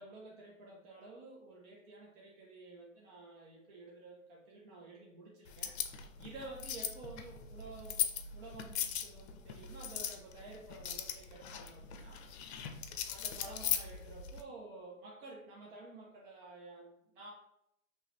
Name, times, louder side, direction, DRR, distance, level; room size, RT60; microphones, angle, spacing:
voice 1, 0.0-12.3 13.0-17.3, right 2 dB, 45° right, -3 dB, 1.0 m, -51 dB
sound 1, 5.5-14.4, left 8 dB, 50° left, 0.6 m, -40 dB
4.8 x 3.2 x 2.9 m, 0.80 s
hypercardioid pair, 115°, 41 cm